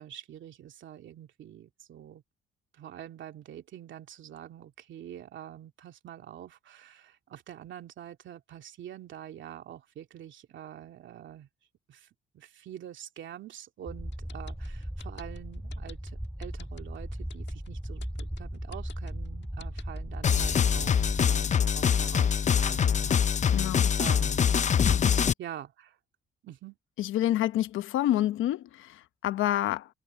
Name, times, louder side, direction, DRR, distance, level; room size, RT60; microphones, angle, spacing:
voice 1, 0.0-2.2 2.7-11.5 11.9-24.6 25.0-26.0 26.4-26.8, right 11 dB, 70° right, 2.5 m, -46 dB
sound 1, 13.9-21.3, equal, 5° right, 4.0 m, -37 dB
sound 2, 14.1-21.0, left 9 dB, 65° left, 1.5 m, -51 dB
sound 3, 20.2-25.3, left 7 dB, 35° left, 0.6 m, -24 dB
voice 2, 23.5-24.0 25.0-25.3 27.0-29.9, left 13 dB, 85° left, 1.0 m, -28 dB
cardioid pair, 90°, 20 cm